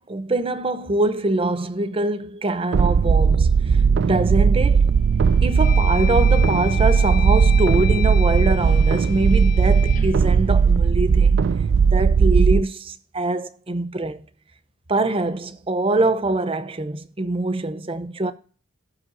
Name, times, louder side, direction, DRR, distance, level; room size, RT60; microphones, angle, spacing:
voice 1, 0.0-4.9 5.4-11.5 11.8-14.2 14.9-18.3, right 2 dB, 30° right, 0.7 m, -24 dB
sound 1, 2.7-12.6, right 6 dB, 60° right, 0.3 m, -17 dB
sound 2, 4.2-4.7 5.2-11.4, left 11 dB, 40° left, 0.5 m, -34 dB
16.5 x 5.6 x 2.7 m
head